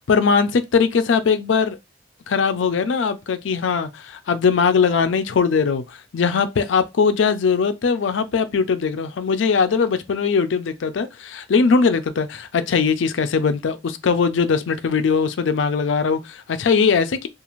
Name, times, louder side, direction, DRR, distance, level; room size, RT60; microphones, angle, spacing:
voice 1, 0.1-1.8 2.3-17.3, left 5 dB, 80° left, 0.4 m, -20 dB
2.4 x 2.4 x 3.0 m
head